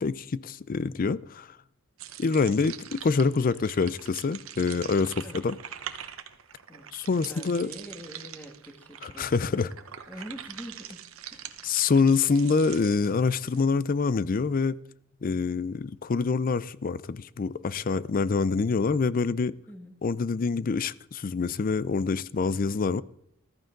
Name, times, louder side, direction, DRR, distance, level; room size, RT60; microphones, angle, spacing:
voice 1, 0.0-1.6 2.2-5.6 6.9-7.7 9.0-9.7 11.6-14.8 15.2-19.5 20.0-23.0, left 4 dB, 45° left, 0.4 m, -26 dB
sound 1, 2.0-13.6, right 10 dB, 90° right, 1.0 m, -44 dB
voice 2, 7.1-9.7 10.1-11.7 19.7-20.0, equal, 10° left, 1.9 m, -45 dB
14.0 x 13.5 x 3.9 m
head